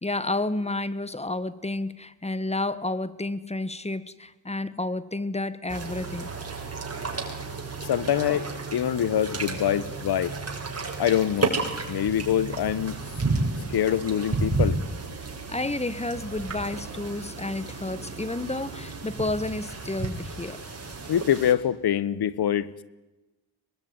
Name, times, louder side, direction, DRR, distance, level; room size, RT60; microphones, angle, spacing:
voice 1, 0.0-6.3 15.5-20.6, left 2 dB, 15° left, 1.7 m, -30 dB
sound 1, 5.7-21.5, right 3 dB, 35° right, 6.7 m, -32 dB
voice 2, 7.8-10.3 11.0-11.6 11.9-13.0 13.7-14.8 21.1-22.7, left 10 dB, 70° left, 1.3 m, -25 dB
23.5 x 21.5 x 9.7 m
cardioid pair, 65°, 39 cm